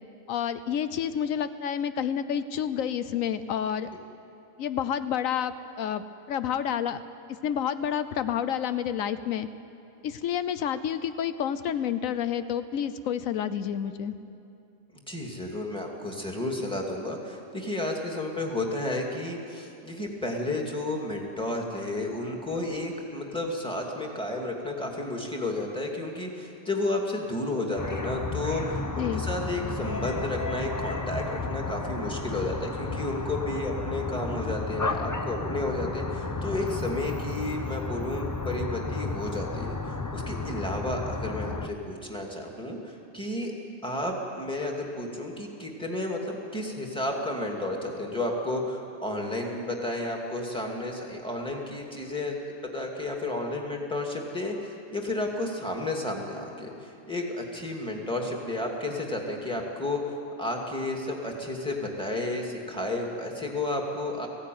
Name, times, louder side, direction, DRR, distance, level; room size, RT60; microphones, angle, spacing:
voice 1, 0.3-3.9 4.6-7.0 7.4-9.5 10.0-14.1 28.9-29.2, left 9 dB, 90° left, 12 dB, 1.1 m, -29 dB
voice 2, 15.1-43.5 43.8-52.4 52.6-64.3, left 2 dB, 5° left, 0 dB, 2.4 m, -32 dB
sound 1, 27.8-41.7, left 3 dB, 20° left, 0.6 m, -32 dB
18.5 x 15.5 x 9.4 m, 2.6 s
omnidirectional pair, 1.4 m